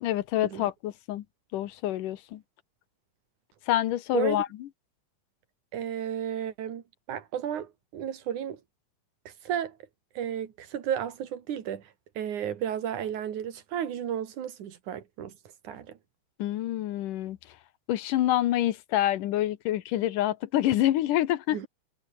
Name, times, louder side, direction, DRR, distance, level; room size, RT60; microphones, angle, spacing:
voice 1, 0.0-1.2 1.5-2.4 3.7-4.7 16.4-17.4 17.9-21.7, left 13 dB, 85° left, 2.7 m, -27 dB
voice 2, 5.7-6.8 7.1-8.6 9.3-9.8 10.2-11.9 12.2-15.3 15.6-16.0 21.5-21.7, right 9 dB, 70° right, 3.5 m, -33 dB
omnidirectional pair, 3.7 m